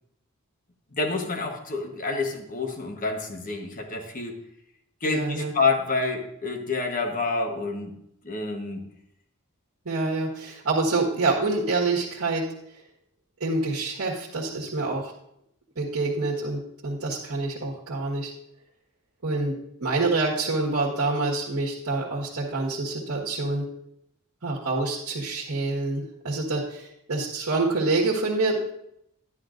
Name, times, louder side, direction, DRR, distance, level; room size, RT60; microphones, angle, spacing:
voice 1, 0.9-4.4 5.0-7.9 8.2-8.8, left 3 dB, 40° left, 3 dB, 1.1 m, -28 dB
voice 2, 5.0-5.5 9.8-12.4 13.4-15.1 15.7-18.3 19.2-19.5 19.8-23.6 24.4-28.7, right 3 dB, 80° right, -5 dB, 1.6 m, -26 dB
11.5 x 9.8 x 2.6 m, 0.76 s
head